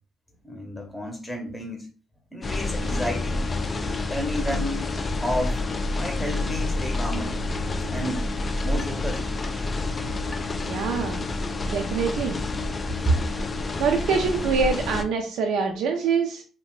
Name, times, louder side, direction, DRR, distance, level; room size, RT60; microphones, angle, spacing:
voice 1, 0.4-1.9 2.3-3.4 4.1-4.9 5.2-5.6 5.9-7.4 7.9-8.3 8.6-9.2 13.0-13.2, equal, 5° left, 1 dB, 0.7 m, -30 dB
sound 1, 2.4-15.0, left 2 dB, 30° left, 0.3 m, -28 dB
voice 2, 10.6-11.2 11.7-12.4 13.8-16.4, right 5 dB, 85° right, 3 dB, 0.4 m, -25 dB
2.7 x 2.1 x 3.0 m, 0.38 s
cardioid pair, 90°, 0 cm